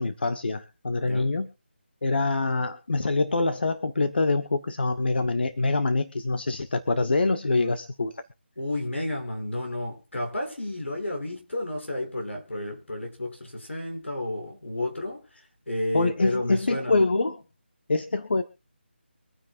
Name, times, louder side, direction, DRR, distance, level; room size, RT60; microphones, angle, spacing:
voice 1, 0.0-1.5 2.0-8.1 15.9-17.4 17.9-18.4, left 3 dB, 60° left, 1.2 m, -25 dB
voice 2, 8.6-15.2 15.7-17.0, left 1 dB, 80° left, 7.1 m, -31 dB
25.0 x 9.6 x 2.6 m
figure-of-eight pair, 165°, 6 cm